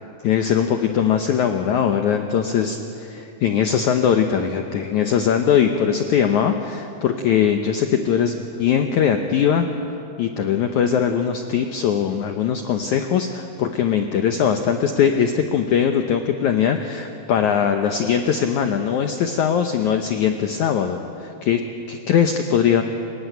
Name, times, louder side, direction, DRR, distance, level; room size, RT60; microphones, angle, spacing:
voice 1, 0.2-9.7 10.2-21.6 21.9-22.8, left 8 dB, 90° left, 5 dB, 1.7 m, -20 dB
29.0 x 16.5 x 9.1 m, 2.8 s
omnidirectional pair, 4.8 m